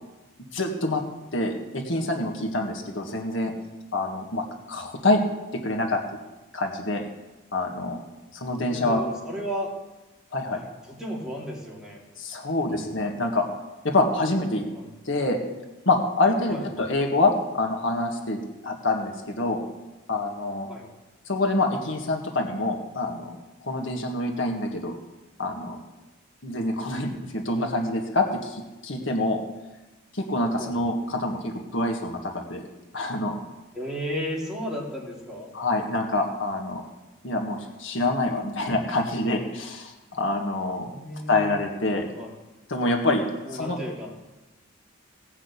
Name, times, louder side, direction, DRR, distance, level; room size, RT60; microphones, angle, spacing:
voice 1, 0.5-1.0 1.3-3.5 3.9-5.2 5.5-6.0 6.5-7.1 7.5-8.0 8.3-9.0 10.3-10.6 12.2-13.4 13.8-14.6 15.1-15.4 15.9-18.4 18.6-19.6 20.1-20.7 21.3-23.4 23.6-25.0 25.4-25.8 26.4-29.4 30.1-32.6 32.9-33.4 35.5-36.8 37.2-40.9 41.3-42.1 42.7-43.2 43.5-43.8, left 2 dB, 65° left, 2 dB, 1.8 m, -26 dB
voice 2, 8.6-9.7 10.5-12.0 12.6-12.9 14.7-14.9 16.5-16.9 20.7-20.9 30.6-30.7 33.7-35.5 37.5-37.6 40.7-41.5 41.9-42.3 43.5-44.1, equal, 5° right, -4 dB, 2.9 m, -34 dB
17.5 x 6.2 x 8.3 m, 1.1 s
head